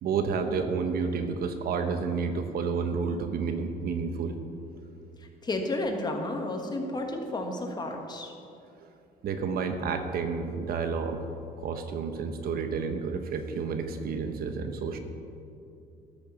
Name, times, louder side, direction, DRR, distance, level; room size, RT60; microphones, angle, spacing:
voice 1, 0.0-4.4 9.2-11.2 11.6-15.0, right 5 dB, 60° right, 7 dB, 1.1 m, -30 dB
voice 2, 5.4-8.3, left 2 dB, 25° left, 3 dB, 1.5 m, -32 dB
12.5 x 6.7 x 7.0 m, 2.6 s
cardioid pair, 110°, 17 cm